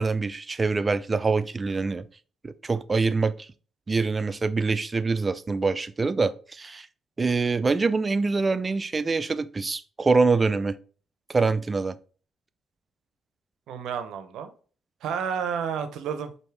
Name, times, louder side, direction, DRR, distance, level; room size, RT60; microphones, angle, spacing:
voice 1, 0.0-2.1 2.4-3.3 3.9-6.9 7.2-10.8 11.3-12.0, right 4 dB, 30° right, 0.3 m, -25 dB
voice 2, 13.7-14.5 15.0-16.3, right 7 dB, 80° right, 0.6 m, -30 dB
4.7 x 2.6 x 3.3 m
cardioid pair, 90°, 0 cm